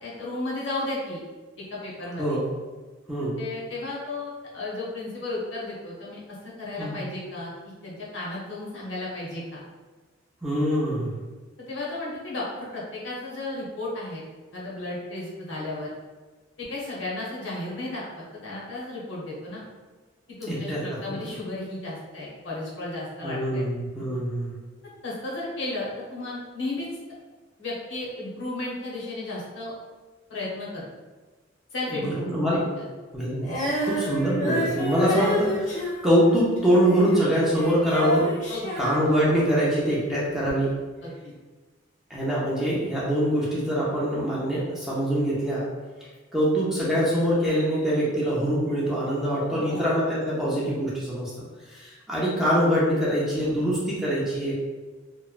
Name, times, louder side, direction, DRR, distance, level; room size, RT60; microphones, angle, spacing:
voice 1, 0.0-1.2 1.6-2.4 3.4-9.6 11.7-14.2 14.5-15.9 16.6-19.6 20.4-23.6 25.0-26.9 27.6-29.7 30.3-30.9 31.7-32.8 38.5-38.9 41.0-41.3 49.5-49.9, left 2 dB, 75° left, -5 dB, 0.8 m, -34 dB
voice 2, 10.4-11.2 20.5-21.2 23.2-24.5 31.9-32.6 33.1-38.3 38.8-40.7 42.1-45.7 46.3-51.3 51.7-54.5, equal, ahead, -7 dB, 0.5 m, -24 dB
Female singing, 33.4-39.8 40.5-40.6, equal, 40° left, 0.6 m, -29 dB
3.0 x 2.1 x 2.4 m, 1.3 s
head